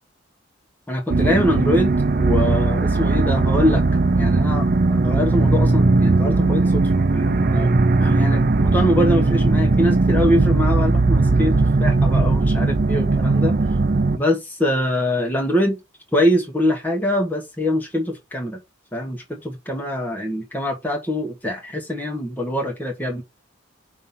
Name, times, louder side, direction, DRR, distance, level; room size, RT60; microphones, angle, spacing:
voice 1, 0.9-3.8 4.1-6.8 7.1-7.7 8.0-11.5 11.8-13.5 14.2-15.8 16.1-18.6 18.9-23.2, equal, 10° left, 1.3 m, -23 dB
sound 1, 1.1-14.2, right 3 dB, 45° right, 0.6 m, -18 dB
5.5 x 3.7 x 5.7 m
head